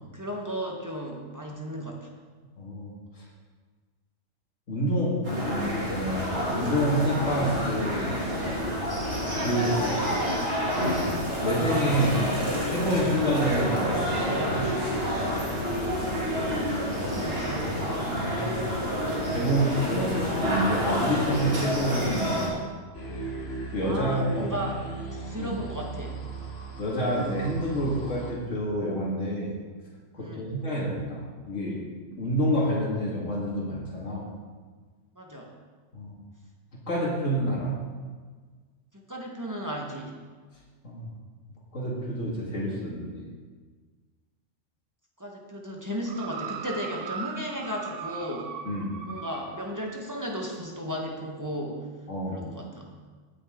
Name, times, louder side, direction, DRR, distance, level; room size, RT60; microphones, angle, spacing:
voice 1, 0.0-2.1 16.4-17.7 23.8-24.8 25.1-26.2 30.1-30.5 35.1-35.5 38.9-40.1 45.2-48.5 49.1-51.9 52.3-52.9, equal, 15° right, -1 dB, 1.4 m, -35 dB
voice 2, 2.6-2.9 4.7-8.0 9.4-9.9 11.4-12.3 12.7-14.6 18.1-18.6 19.3-22.5 23.7-24.5 25.4-25.5 26.8-29.5 30.1-31.8 32.2-34.3 35.9-36.2 36.9-37.7 40.8-41.1 41.7-43.3 48.7-48.9 52.1-52.4, equal, 85° left, -4 dB, 2.4 m, -28 dB
sound 1, 5.2-22.5, equal, 50° right, 2.9 m, -28 dB
sound 2, 22.9-28.3, right 3 dB, 55° left, 1.6 m, -37 dB
sound 3, 46.1-49.7 50.5-50.6, right 7 dB, 80° right, 1.1 m, -38 dB
18.0 x 6.4 x 3.7 m, 1.5 s
omnidirectional pair, 1.3 m